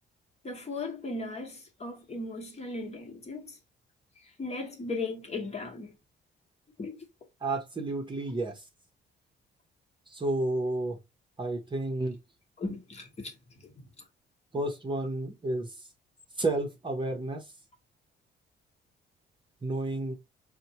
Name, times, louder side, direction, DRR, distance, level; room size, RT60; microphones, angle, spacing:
voice 1, 0.4-3.5 4.4-5.9 6.8-7.0 12.6-13.3, left 3 dB, 30° left, 1.1 m, -37 dB
voice 2, 7.4-8.6 10.1-11.0 11.4-12.2 14.5-15.9 16.4-17.5 19.6-20.1, right 2 dB, 25° right, 0.8 m, -31 dB
4.2 x 2.1 x 2.8 m
cardioid pair, 90°, 20 cm